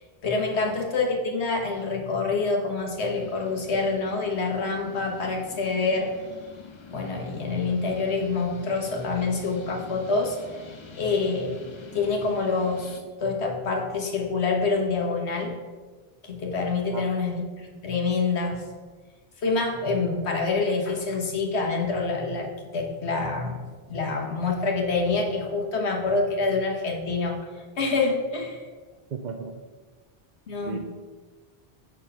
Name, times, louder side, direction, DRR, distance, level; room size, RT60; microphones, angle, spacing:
voice 1, 0.2-6.1 6.9-11.6 11.9-15.6 16.2-18.6 19.4-28.7 30.5-30.8, left 3 dB, 80° left, 1 dB, 1.5 m, -27 dB
sound 1, 3.1-13.0, left 3 dB, 35° left, 0.5 m, -46 dB
voice 2, 29.1-29.6 30.6-30.8, right 5 dB, 55° right, 3 dB, 0.6 m, -34 dB
7.2 x 4.5 x 5.5 m, 1.4 s
omnidirectional pair, 1.1 m